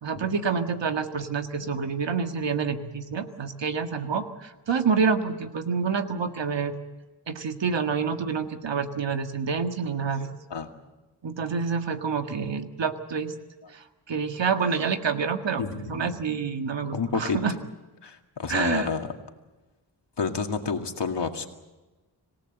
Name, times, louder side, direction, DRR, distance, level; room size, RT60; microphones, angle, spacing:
voice 1, 0.0-6.7 7.3-10.3 11.2-13.3 13.7-17.5 18.5-18.9, right 5 dB, 90° right, 7 dB, 1.8 m, -28 dB
voice 2, 15.6-16.0 16.9-17.4 18.0-19.1 20.2-21.5, left 5 dB, 75° left, 5 dB, 2.2 m, -29 dB
26.5 x 17.5 x 7.9 m, 1.1 s
wide cardioid pair, 70°, 42 cm